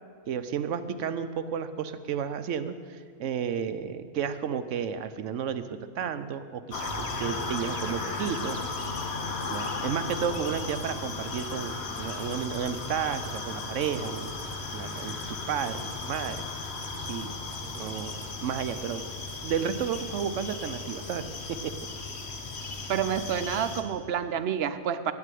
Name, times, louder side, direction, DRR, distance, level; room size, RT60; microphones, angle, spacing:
voice 1, 0.3-8.9 9.5-14.3 14.7-16.4 17.0-17.4 17.8-19.0 19.4-21.2, right 7 dB, 85° right, 11 dB, 1.1 m, -32 dB
sound 1, 6.7-23.8, left 3 dB, 60° left, 1.3 m, -36 dB
sound 2, 6.8-9.1 9.4-9.8 10.1-10.9 11.3-11.6 12.0-12.8 13.1-13.5 13.8-14.6 15.0-15.3 15.7-16.5 16.8-17.2 17.5-18.3, right 3 dB, 45° right, 1.2 m, -44 dB
voice 2, 22.9-25.1, right 8 dB, 60° right, 11 dB, 0.8 m, -28 dB
9.7 x 9.0 x 9.2 m, 2.2 s
omnidirectional pair, 1.2 m